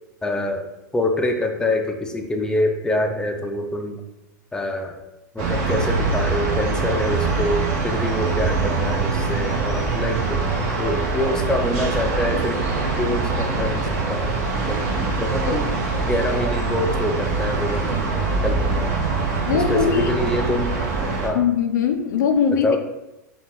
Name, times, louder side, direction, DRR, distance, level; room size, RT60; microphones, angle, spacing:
voice 1, 0.2-0.7 0.9-4.0 4.5-5.0 5.3-10.4 10.8-12.6 13.0-14.4 14.7-14.8 15.2-15.7 16.0-19.0 19.5-20.7 21.2-21.4 22.6-22.8, left 1 dB, 5° left, 3 dB, 0.6 m, -25 dB
sound 1, 5.4-21.3, right 4 dB, 60° right, 1.3 m, -23 dB
voice 2, 19.4-20.2 21.3-22.8, left 7 dB, 75° left, 5 dB, 0.5 m, -21 dB
5.3 x 2.5 x 3.7 m, 0.95 s
hypercardioid pair, 95°, 10 cm